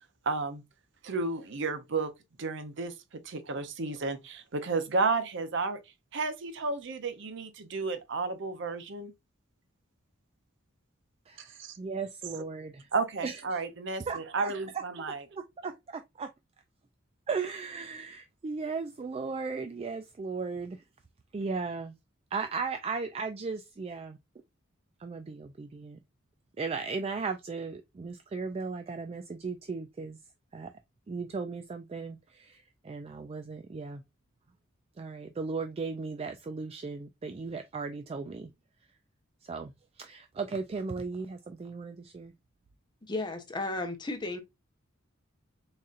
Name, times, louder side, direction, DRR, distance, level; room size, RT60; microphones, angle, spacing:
voice 1, 0.2-0.6 1.0-2.1 2.4-5.8 6.1-9.1 11.4-11.8 12.9-15.2, right 3 dB, 60° right, 0.7 m, -32 dB
voice 2, 11.3-12.9 13.2-13.6 14.1-16.3 17.3-20.9 21.3-22.0 22.3-24.2 25.0-26.0 26.6-30.7 31.1-34.0 35.0-38.5 38.8-39.0 39.4-42.3, right 4 dB, 30° right, 0.3 m, -37 dB
voice 3, 43.1-44.4, left 2 dB, 20° left, 0.8 m, -34 dB
4.1 x 3.7 x 2.4 m
head